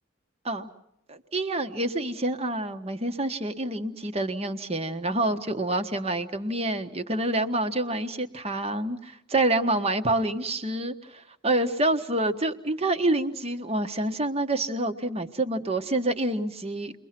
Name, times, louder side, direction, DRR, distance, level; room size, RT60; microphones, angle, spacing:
voice 1, 1.1-16.9, right 2 dB, 30° right, 7 dB, 1.4 m, -27 dB
29.5 x 23.0 x 6.0 m, 0.79 s
head